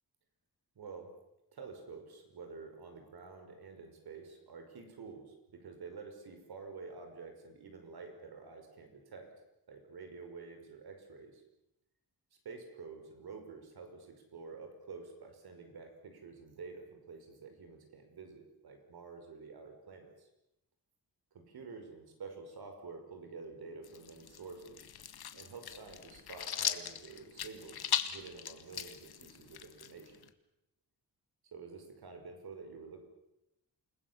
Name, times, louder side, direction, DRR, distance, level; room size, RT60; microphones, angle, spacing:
voice 1, 0.8-1.1 1.5-9.3 9.7-11.4 12.4-20.3 21.3-24.9 25.3-30.2 31.5-33.0, right 4 dB, 80° right, 5 dB, 5.7 m, -49 dB
sound 1, 23.8-30.3, left 9 dB, 75° left, 1.6 m, -39 dB
29.0 x 20.5 x 7.2 m, 0.86 s
wide cardioid pair, 160°, 38 cm